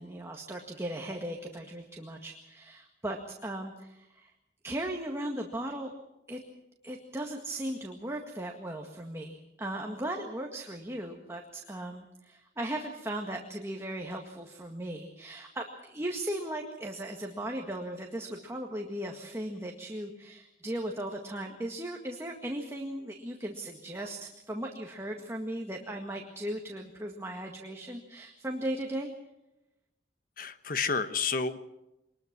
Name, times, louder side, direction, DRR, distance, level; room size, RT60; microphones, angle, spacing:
voice 1, 0.0-4.3 4.6-5.9 6.3-6.4 6.8-29.1, right 1 dB, 15° right, 1 dB, 1.9 m, -37 dB
voice 2, 30.4-31.6, left 5 dB, 55° left, 10 dB, 1.3 m, -30 dB
24.5 x 20.5 x 6.1 m, 0.92 s
head